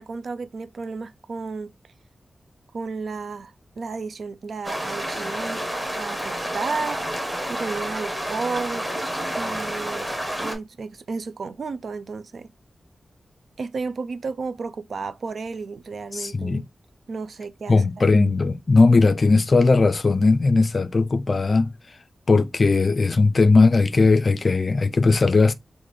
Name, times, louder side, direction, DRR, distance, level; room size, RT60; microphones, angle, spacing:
voice 1, 0.0-1.7 2.7-5.6 6.0-7.0 7.5-8.9 9.4-10.1 10.4-12.5 13.6-16.6 17.1-17.8, right 4 dB, 70° right, 0.4 m, -32 dB
sound 1, 4.6-10.6, right 1 dB, 10° right, 1.1 m, -29 dB
voice 2, 16.1-16.6 17.7-21.7 22.3-25.5, left 3 dB, 40° left, 0.4 m, -18 dB
3.8 x 2.5 x 3.1 m
wide cardioid pair, 130°, 0 cm